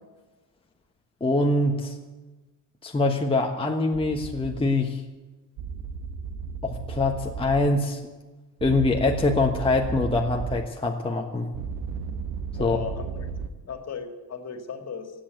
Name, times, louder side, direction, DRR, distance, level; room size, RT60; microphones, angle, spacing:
voice 1, 1.2-2.0 2.8-5.0 6.6-8.0 8.6-11.5 12.6-12.8, left 2 dB, 15° left, 1 dB, 1.3 m, -24 dB
sound 1, 3.9-4.6 5.6-7.7 8.6-10.6 11.5-13.5, right 5 dB, 65° right, 1.2 m, -34 dB
voice 2, 12.6-13.3 13.6-15.1, left 6 dB, 40° left, 5 dB, 2.4 m, -36 dB
16.0 x 8.7 x 8.1 m, 1.2 s
supercardioid pair, 85°, 38 cm